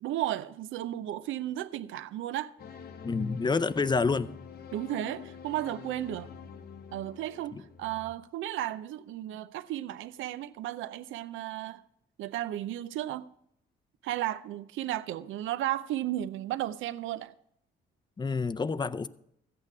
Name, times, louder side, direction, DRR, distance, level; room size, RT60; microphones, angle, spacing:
voice 1, 0.0-2.5 4.7-6.3 6.9-11.8 12.2-13.3 14.0-17.3, right 13 dB, 80° right, 0.6 m, -34 dB
sound 1, 2.6-8.1, left 7 dB, 50° left, 0.8 m, -46 dB
voice 2, 3.0-4.3 7.5-7.6 18.2-19.1, left 4 dB, 20° left, 0.5 m, -28 dB
14.0 x 8.7 x 4.7 m
cardioid pair, 90°, 20 cm